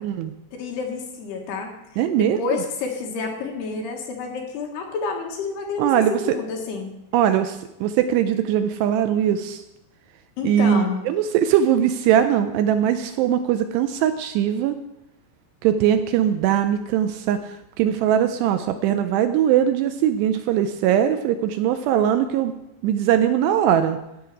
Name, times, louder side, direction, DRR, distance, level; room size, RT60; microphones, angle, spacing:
voice 1, 0.0-0.3 2.0-2.4 5.8-6.2 7.1-9.6 10.4-14.8 15.6-22.5 22.8-24.0, right 10 dB, 80° right, 8 dB, 2.5 m, -21 dB
voice 2, 0.5-5.8 6.1-6.9 10.4-11.0, left 4 dB, 70° left, 1 dB, 3.3 m, -29 dB
12.5 x 8.9 x 4.7 m, 0.89 s
omnidirectional pair, 5.2 m